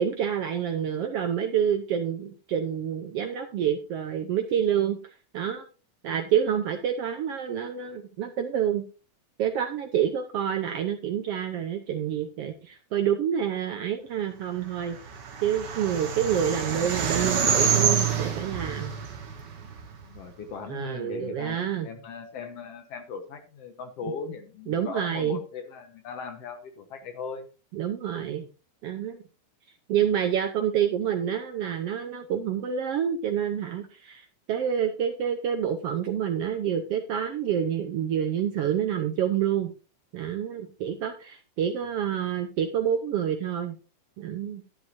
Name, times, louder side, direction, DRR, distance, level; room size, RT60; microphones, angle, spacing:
voice 1, 0.0-5.0 5.3-5.6 6.0-8.8 9.4-15.0 15.4-18.9 20.7-21.9 24.0-24.1 24.7-25.4 27.7-28.5 28.8-29.2 29.9-39.7 40.1-43.8 44.2-44.6, right 9 dB, 80° right, 6 dB, 1.3 m, -28 dB
sound 1, 14.8-20.2, right 7 dB, 55° right, 1.3 m, -27 dB
voice 2, 20.0-27.5, left 5 dB, 60° left, 7 dB, 1.9 m, -38 dB
11.5 x 10.5 x 2.7 m, 0.34 s
omnidirectional pair, 3.7 m